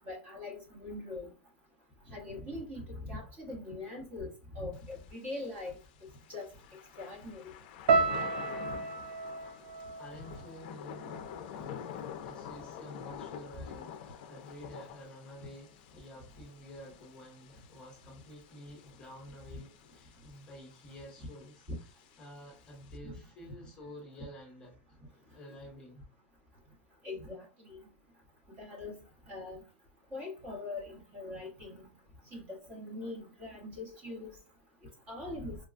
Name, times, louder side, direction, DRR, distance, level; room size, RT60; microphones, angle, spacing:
voice 1, 0.0-1.3 2.1-5.8 6.3-6.5 7.0-7.5 21.7-21.8 27.0-27.8 28.6-28.9 29.3-29.6 30.1-31.9 32.3-34.3 35.1-35.6, left 2 dB, 25° right, 1.2 m, -42 dB
Thunder / Rain, 4.7-23.0, left 8 dB, 50° left, 0.5 m, -48 dB
sound 1, 7.9-12.1 12.3-13.1 13.7-13.9, right 4 dB, 70° right, 0.5 m, -33 dB
voice 2, 10.0-25.0 25.3-26.0, equal, 15° left, 0.9 m, -50 dB
4.4 x 2.2 x 2.5 m
supercardioid pair, 170°, 6 cm